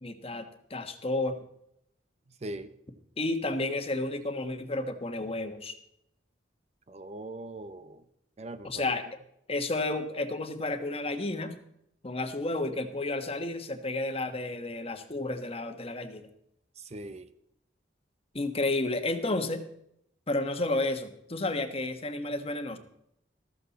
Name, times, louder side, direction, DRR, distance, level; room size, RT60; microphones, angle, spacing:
voice 1, 0.0-1.4 3.2-5.7 8.6-9.0 9.5-11.6 12.0-16.3 18.3-19.6 20.3-22.8, left 2 dB, 35° left, 7 dB, 1.3 m, -31 dB
voice 2, 2.4-2.7 6.9-8.0 8.4-8.8 16.8-17.3, right 1 dB, 40° right, 11 dB, 0.8 m, -41 dB
14.5 x 14.0 x 4.2 m, 0.75 s
head